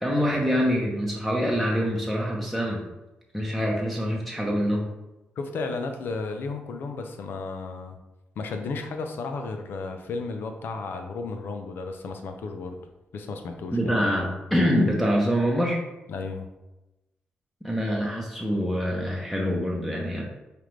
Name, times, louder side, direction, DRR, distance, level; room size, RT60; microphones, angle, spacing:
voice 1, 0.0-2.9 3.3-4.9 13.7-15.8 17.6-20.2, equal, 5° left, -2 dB, 0.8 m, -25 dB
voice 2, 5.4-8.0 8.4-12.8 13.1-14.0 16.1-16.5, left 4 dB, 75° left, 5 dB, 0.5 m, -33 dB
4.8 x 2.5 x 3.1 m, 1.0 s
cardioid pair, 75°, 4 cm